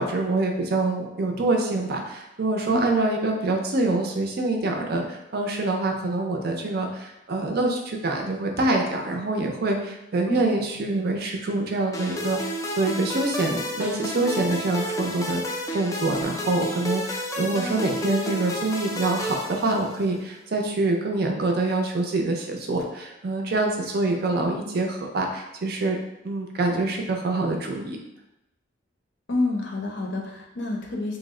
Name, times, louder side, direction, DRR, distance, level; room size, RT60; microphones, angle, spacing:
voice 1, 0.0-15.4 15.7-26.0 26.2-28.0, right 2 dB, 55° right, 2 dB, 0.5 m, -25 dB
sound 1, 11.9-20.2, equal, 15° left, 0.3 m, -31 dB
voice 2, 29.3-31.2, left 2 dB, 65° left, 0 dB, 0.6 m, -28 dB
2.8 x 2.0 x 3.6 m, 0.90 s
head